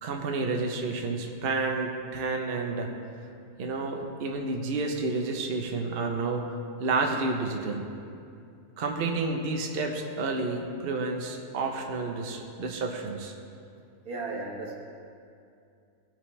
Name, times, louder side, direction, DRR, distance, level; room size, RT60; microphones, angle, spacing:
voice 1, 0.0-2.9 3.6-6.5 6.8-7.9 8.8-13.3, right 3 dB, 50° right, 2 dB, 0.9 m, -30 dB
voice 2, 14.1-14.7, right 3 dB, 75° right, -2 dB, 1.9 m, -35 dB
17.5 x 6.1 x 3.2 m, 2.5 s
omnidirectional pair, 1.6 m